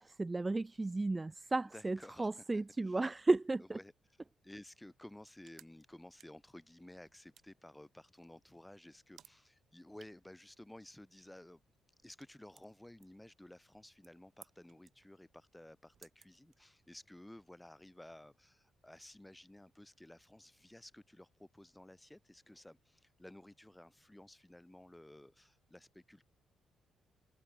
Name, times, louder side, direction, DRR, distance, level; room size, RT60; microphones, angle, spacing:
voice 1, 0.0-3.8, right 2 dB, 20° right, 0.6 m, -34 dB
voice 2, 1.7-2.3 2.9-3.0 3.7-3.9 4.4-11.6 12.0-26.2, left 1 dB, 5° left, 7.6 m, -55 dB
sound 1, 5.0-17.1, right 9 dB, 60° right, 5.1 m, -67 dB
cardioid pair, 90°, 0 cm